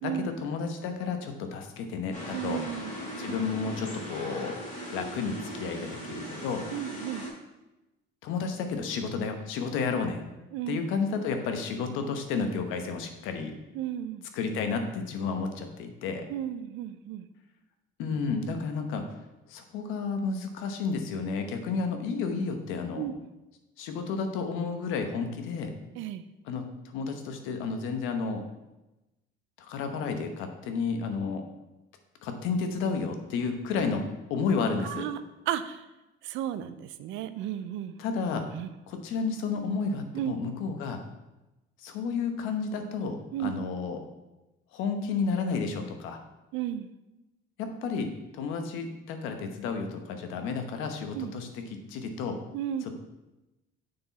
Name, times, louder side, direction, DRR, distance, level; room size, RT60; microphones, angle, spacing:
voice 1, 0.0-2.6 3.2-4.6 4.9-6.7 8.2-10.2 10.7-13.5 14.4-16.2 18.0-19.0 19.5-23.0 23.8-25.7 26.5-28.4 29.6-31.4 32.2-34.0 34.3-35.0 38.0-38.5 38.9-41.0 41.8-44.0 44.7-46.2 47.6-51.5 51.9-52.4 52.9-53.0, left 5 dB, 90° left, 6 dB, 1.0 m, -31 dB
sound 1, 2.1-7.3, equal, 35° left, 2.3 m, -39 dB
voice 2, 2.3-3.0 6.7-7.3 10.5-10.8 13.7-14.3 16.3-17.3 22.9-23.1 25.9-26.3 34.8-35.2 35.5-35.9 36.2-38.0 38.5-38.7 40.1-40.3 43.3-43.5 46.5-46.9 51.1-51.3 52.5-52.8, right 11 dB, 75° right, 12 dB, 0.5 m, -33 dB
6.8 x 5.9 x 4.1 m, 1.0 s
cardioid pair, 160°, 20 cm